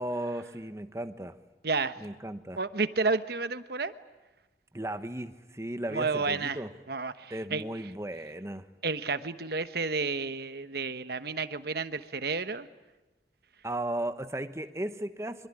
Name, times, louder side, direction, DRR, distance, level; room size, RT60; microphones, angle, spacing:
voice 1, 0.0-1.3 2.0-2.6 4.7-6.7 7.3-8.7 13.6-15.5, right 1 dB, 15° right, 10 dB, 1.1 m, -35 dB
voice 2, 1.6-2.0 2.6-3.9 5.9-6.6 6.9-7.6 8.8-12.7, right 4 dB, 60° right, 11 dB, 1.2 m, -31 dB
24.5 x 24.0 x 9.9 m, 1.1 s
head